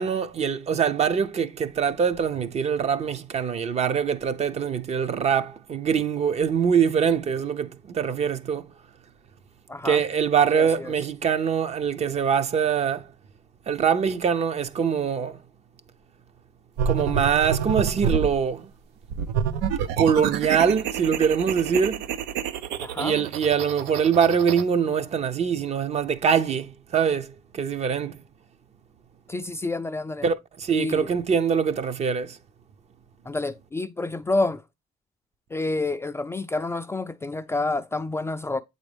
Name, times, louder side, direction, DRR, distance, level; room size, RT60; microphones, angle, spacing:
voice 1, 0.0-8.6 9.8-13.0 13.7-15.3 16.9-18.7 20.0-22.0 23.0-27.3 27.5-28.2 30.2-30.4 30.6-32.3, right 7 dB, 40° right, 0.6 m, -23 dB
voice 2, 9.7-10.0 10.5-10.9 22.8-23.3 29.3-30.3 30.7-31.1 33.3-34.6 35.5-38.6, left 2 dB, 15° left, 0.3 m, -28 dB
sound 1, 16.8-18.4 19.1-24.6, right 7 dB, 85° right, 0.6 m, -28 dB
7.9 x 4.0 x 3.3 m
cardioid pair, 110°, 17 cm